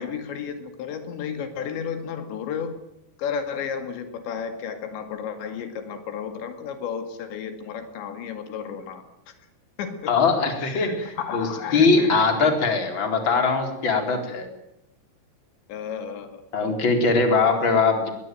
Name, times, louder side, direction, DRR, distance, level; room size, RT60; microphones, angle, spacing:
voice 1, 0.0-2.7 3.2-9.0 9.8-10.1 10.6-12.2 15.7-16.4, left 7 dB, 80° left, 8 dB, 4.4 m, -32 dB
voice 2, 10.1-11.5 11.7-14.5 16.5-18.1, left 4 dB, 30° left, 5 dB, 4.5 m, -21 dB
22.0 x 21.5 x 9.2 m, 0.85 s
omnidirectional pair, 5.1 m